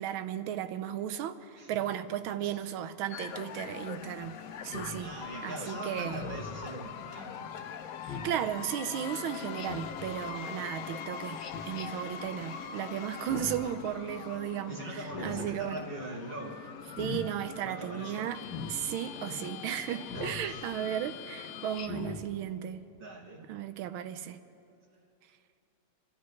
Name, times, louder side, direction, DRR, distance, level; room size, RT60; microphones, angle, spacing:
voice 1, 0.0-4.4 4.6-5.1 5.4-6.2 8.0-15.8 17.0-18.4 18.7-22.8 23.5-24.4, right 10 dB, 85° right, 1.5 m, -35 dB
sound 1, 3.1-21.8, left 8 dB, 80° left, 0.8 m, -42 dB
Speech synthesizer, 4.7-5.0 6.1-6.6 8.0-8.4 9.6-10.1 11.4-11.9 13.2-13.7 15.0-15.5 16.8-17.2 18.4-18.8 20.1-20.4 21.7-22.2, left 5 dB, 65° left, 1.6 m, -40 dB
voice 2, 5.0-7.5 14.7-16.7 17.5-18.3 19.2-19.5 19.9-20.6 23.0-23.5, right 2 dB, 40° right, 0.9 m, -42 dB
27.5 x 12.5 x 3.2 m
omnidirectional pair, 2.2 m